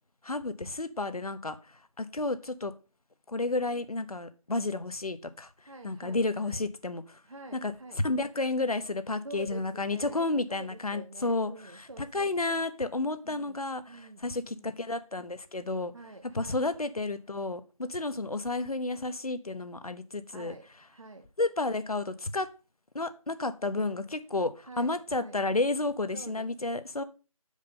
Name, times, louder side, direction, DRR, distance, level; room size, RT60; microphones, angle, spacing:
voice 1, 0.2-1.6 2.0-2.7 3.3-5.5 5.8-7.2 7.6-7.7 8.0-11.9 12.1-15.9 16.3-20.5 21.4-22.5 22.9-27.0, left 2 dB, 80° left, 11 dB, 0.9 m, -31 dB
voice 2, 5.6-6.6 7.2-8.0 9.2-12.6 13.2-14.7 15.9-16.6 20.3-21.3 24.6-25.4 26.1-26.8, right 2 dB, 55° right, 4 dB, 0.9 m, -48 dB
6.5 x 5.1 x 5.4 m, 0.34 s
figure-of-eight pair, 165°, 19 cm